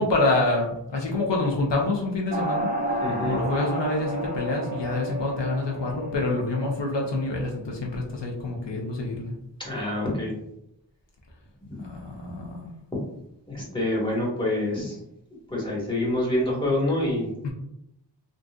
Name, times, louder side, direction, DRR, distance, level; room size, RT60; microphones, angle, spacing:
voice 1, 0.0-2.7 3.2-9.3 11.8-12.7 17.4-17.5, left 2 dB, 75° left, -1 dB, 0.7 m, -27 dB
sound 1, 2.3-7.3, right 1 dB, 20° right, 0.7 m, -31 dB
voice 2, 3.0-3.4 9.6-10.3 11.7-11.8 12.2-12.3 13.5-15.0 15.5-17.3, left 1 dB, 10° left, -4 dB, 1.4 m, -26 dB
3.9 x 2.4 x 2.3 m, 0.80 s
wide cardioid pair, 50°, 43 cm